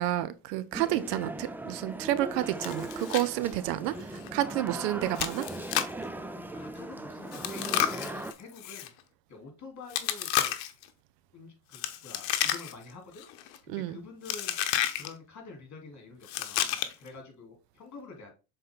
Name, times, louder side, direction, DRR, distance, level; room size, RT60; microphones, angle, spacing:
voice 1, 0.0-5.5 13.7-14.0, right 14 dB, 85° right, 0.8 m, -30 dB
sound 1, 0.7-8.3, right 1 dB, 5° right, 0.4 m, -39 dB
Chewing mastication, 2.6-3.3 3.6-3.7 4.2-4.3 5.2-6.0 7.3-8.9 9.9-10.8 11.7-12.9 13.2-13.6 14.3-15.1 16.2-17.1, left 12 dB, 65° left, 1.0 m, -31 dB
voice 2, 6.5-8.9 9.3-10.6 11.3-13.3 13.6-14.6 14.9-18.3, left 3 dB, 35° left, 3.2 m, -47 dB
6.8 x 4.2 x 3.7 m
supercardioid pair, 95°, 47 cm